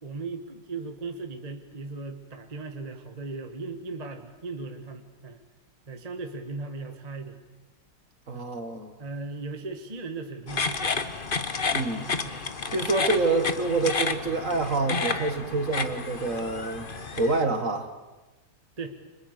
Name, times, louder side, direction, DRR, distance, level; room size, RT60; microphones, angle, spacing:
voice 1, 0.0-5.4 5.9-7.4 8.3-8.5 9.0-11.0 12.2-12.4 18.8-19.0, right 3 dB, 20° right, 5 dB, 1.5 m, -37 dB
voice 2, 8.3-8.9 11.7-12.1 12.7-17.9, right 3 dB, 40° right, 7 dB, 2.1 m, -27 dB
sound 1, 10.5-17.4, left 4 dB, 30° left, 1.0 m, -31 dB
30.0 x 25.5 x 6.8 m, 1.1 s
omnidirectional pair, 2.3 m